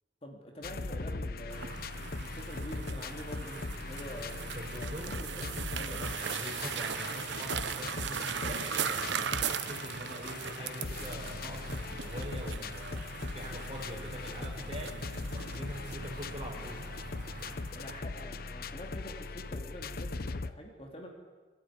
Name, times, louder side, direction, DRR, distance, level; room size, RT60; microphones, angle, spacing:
voice 1, 0.2-4.4 4.7-5.5 5.7-6.1 8.3-8.4 17.7-21.1, equal, 30° left, 1 dB, 2.8 m, -46 dB
sound 1, 0.6-20.5, left 3 dB, 50° left, 0.8 m, -40 dB
sound 2, 1.5-18.0, right 7 dB, 70° right, 0.9 m, -39 dB
sound 3, 3.9-17.5, right 2 dB, 50° right, 2.1 m, -53 dB
voice 2, 4.6-5.1 5.9-14.9 15.3-16.8, equal, 30° right, 0 dB, 5.7 m, -44 dB
25.5 x 13.0 x 9.8 m, 1.4 s
head